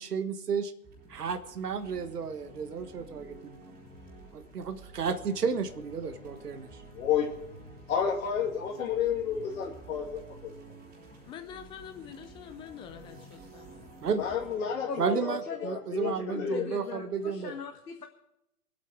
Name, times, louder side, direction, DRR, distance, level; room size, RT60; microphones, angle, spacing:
voice 1, 0.0-0.7 1.1-3.7 4.3-6.8 14.0-14.2 15.0-17.5, right 6 dB, 80° right, 8 dB, 1.5 m, -32 dB
sound 1, 0.8-16.2, right 2 dB, 20° right, 3.5 m, -51 dB
voice 2, 6.9-7.3 7.9-10.5 14.2-16.7, left 7 dB, 60° left, -3 dB, 2.8 m, -31 dB
voice 3, 11.2-13.9, left 8 dB, 10° left, 8 dB, 0.5 m, -46 dB
voice 4, 14.9-15.6 16.0-16.1 16.5-18.1, left 6 dB, 85° left, 4 dB, 1.7 m, -39 dB
24.5 x 8.6 x 4.8 m, 0.82 s
hypercardioid pair, 125°, 46 cm